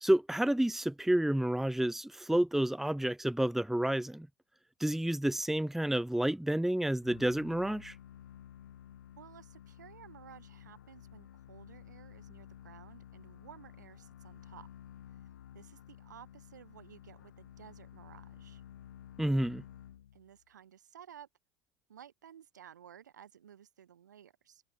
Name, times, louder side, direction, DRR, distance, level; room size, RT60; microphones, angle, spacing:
voice 1, 0.0-4.3 4.8-7.9 19.2-19.6, right 1 dB, 5° right, 0.8 m, -30 dB
sound 1, 7.0-20.4, left 11 dB, 85° left, 5.0 m, -53 dB
voice 2, 9.2-14.7 15.1-15.2 15.5-18.6 20.1-21.3 21.9-24.6, right 9 dB, 90° right, 4.9 m, -55 dB
hypercardioid pair, 75°, 9 cm